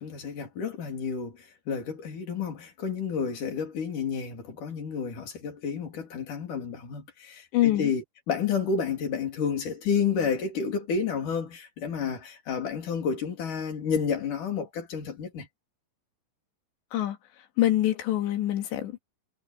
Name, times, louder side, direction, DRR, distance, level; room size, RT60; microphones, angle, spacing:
voice 1, 0.0-15.5, left 6 dB, 45° left, 4.7 m, -30 dB
voice 2, 7.5-7.9 16.9-17.2 17.6-19.0, left 14 dB, 70° left, 4.4 m, -25 dB
omnidirectional pair, 5.3 m